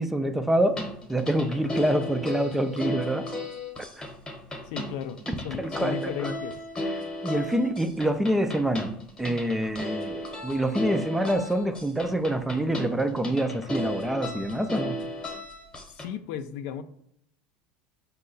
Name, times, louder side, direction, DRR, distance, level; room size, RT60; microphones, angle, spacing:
voice 1, 0.0-3.3 4.0-4.1 5.6-6.3 7.2-15.0, right 1 dB, 5° right, 0.3 m, -26 dB
sound 1, 0.7-16.1, left 1 dB, 20° left, 0.9 m, -35 dB
voice 2, 4.7-6.6 15.9-16.8, left 9 dB, 70° left, 0.4 m, -35 dB
5.3 x 2.2 x 3.8 m
supercardioid pair, 120°, 4 cm